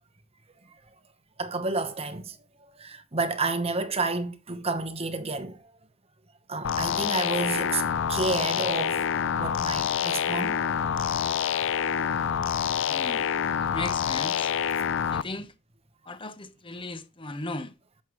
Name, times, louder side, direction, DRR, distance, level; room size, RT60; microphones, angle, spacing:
voice 1, 1.4-2.4 2.8-5.6 6.5-7.8 8.1-9.0 9.3-10.6, right 3 dB, 30° right, 1.0 m, -30 dB
sound 1, 6.6-15.2, left 8 dB, 65° left, 0.4 m, -27 dB
voice 2, 12.9-13.3 13.7-14.5 15.1-15.5 16.1-17.7, left 2 dB, 25° left, 0.9 m, -36 dB
11.0 x 7.7 x 3.1 m
head